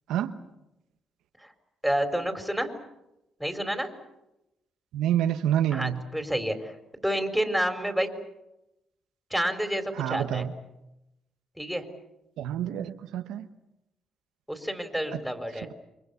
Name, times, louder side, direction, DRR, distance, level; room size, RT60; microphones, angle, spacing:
voice 1, 1.8-2.7 3.4-3.9 5.7-8.1 9.3-10.4 11.6-11.9 14.5-15.7, equal, ahead, 6 dB, 4.5 m, -29 dB
voice 2, 4.9-6.0 10.0-10.5 12.4-13.5 15.1-15.2, right 10 dB, 90° right, 7 dB, 1.2 m, -27 dB
29.5 x 25.0 x 7.1 m, 0.92 s
cardioid pair, 90°, 0 cm